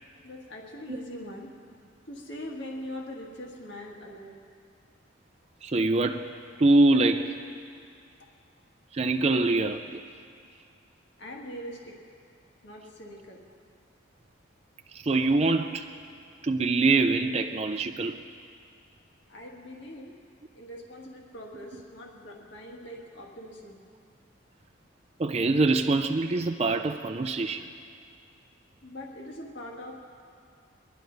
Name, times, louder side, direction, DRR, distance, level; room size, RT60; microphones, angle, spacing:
voice 1, 0.2-1.5 2.1-4.4 11.2-12.0 12.6-13.4 19.3-20.2 20.5-23.8 28.8-29.9, left 1 dB, 65° left, -1 dB, 1.8 m, -42 dB
voice 2, 5.6-7.4 8.9-10.0 14.9-15.9 16.4-18.2 25.2-27.7, right 2 dB, 30° right, 6 dB, 0.4 m, -24 dB
23.5 x 11.0 x 4.0 m, 2.3 s
head